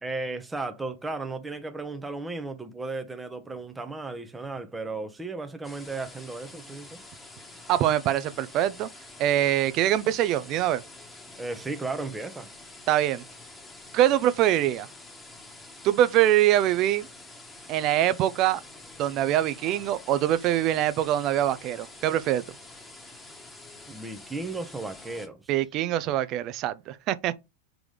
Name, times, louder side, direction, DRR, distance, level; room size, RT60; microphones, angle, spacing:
voice 1, 0.0-7.0 11.4-12.5 23.9-25.6, right 3 dB, 10° right, 1.0 m, -35 dB
sound 1, 5.6-25.3, left 2 dB, 10° left, 1.4 m, -47 dB
voice 2, 7.7-8.9 9.2-10.8 12.9-13.2 13.9-14.9 15.8-17.1 17.7-18.6 19.0-22.4 25.5-27.4, right 12 dB, 45° right, 0.7 m, -24 dB
5.0 x 3.8 x 4.8 m
hypercardioid pair, 120°, 0 cm